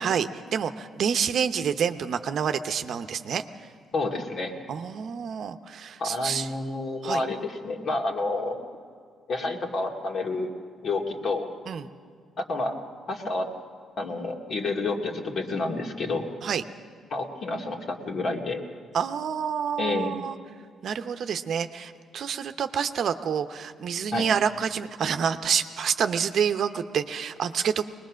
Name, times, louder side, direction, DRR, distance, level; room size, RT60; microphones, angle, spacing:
voice 1, 0.0-3.4 4.7-6.5 7.0-7.2 11.7-11.9 16.4-16.6 18.9-20.4 20.8-27.8, right 7 dB, 60° right, 9 dB, 0.8 m, -28 dB
voice 2, 3.9-4.5 6.0-8.6 9.3-10.5 10.8-11.4 12.4-12.8 13.1-13.5 14.0-16.3 17.1-18.6 19.8-20.1 24.1-24.3, left 2 dB, 55° left, 1 dB, 2.4 m, -29 dB
22.0 x 20.0 x 6.3 m, 2.1 s
cardioid pair, 90°, 0 cm